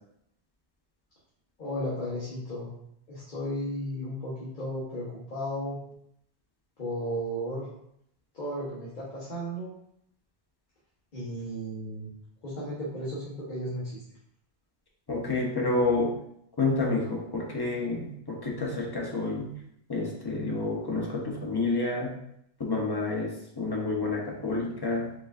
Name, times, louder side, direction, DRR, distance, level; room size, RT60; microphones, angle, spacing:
voice 1, 1.6-2.7 3.1-5.8 6.8-7.7 8.3-9.7 11.1-12.1 12.4-14.0, equal, 50° left, -7 dB, 1.2 m, -34 dB
voice 2, 15.1-16.1 16.6-19.5 19.9-22.1 22.6-25.1, left 3 dB, 25° left, -2 dB, 0.9 m, -29 dB
4.8 x 3.7 x 2.5 m, 0.74 s
omnidirectional pair, 1.0 m